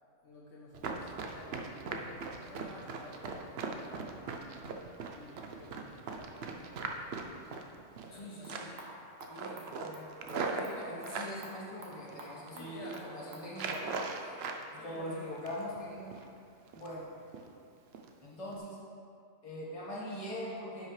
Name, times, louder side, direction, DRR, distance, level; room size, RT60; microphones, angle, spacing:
voice 1, 0.2-4.2 5.1-8.7 12.5-13.2 14.8-15.4, left 1 dB, 65° left, -4 dB, 1.1 m, -52 dB
Run, 0.7-8.2 8.5-8.9 9.2-11.3 11.9-12.5 12.8-13.0 13.5-14.6 15.0-15.8 16.1-16.3 16.7-17.0 17.3-17.5 17.9-18.1 18.5-18.6, right 4 dB, 60° right, 0.8 m, -40 dB
voice 2, 8.1-8.7 9.3-14.0 14.7-16.2 16.7-17.1 18.2-18.8 19.4-20.9, equal, 25° left, -6 dB, 1.5 m, -42 dB
sound 1, 8.2-13.9, right 1 dB, 80° right, 1.5 m, -52 dB
10.0 x 5.6 x 3.2 m, 2.5 s
omnidirectional pair, 1.4 m